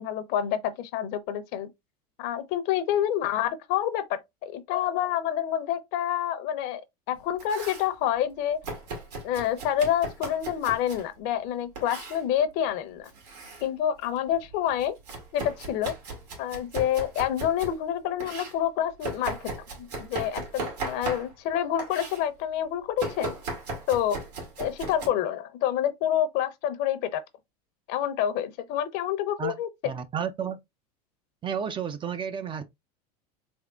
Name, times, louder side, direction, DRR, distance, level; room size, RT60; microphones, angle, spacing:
voice 1, 0.0-1.7 2.2-6.8 7.1-8.6 9.2-13.1 13.6-15.0 15.3-15.9 16.4-19.4 19.8-23.3 23.9-24.2 24.6-27.2 27.9-29.7, left 10 dB, 60° left, 0.7 m, -28 dB
Domestic sounds home sounds, 7.1-7.9 8.6-11.1 11.8-12.2 13.0-13.7 14.0-17.8 18.2-21.5 21.8-22.2 23.0-25.1, right 3 dB, 85° right, 1.9 m, -37 dB
voice 2, 29.8-30.6 31.4-32.6, right 7 dB, 25° right, 0.5 m, -31 dB
3.5 x 3.4 x 2.4 m
supercardioid pair, 110°, 20 cm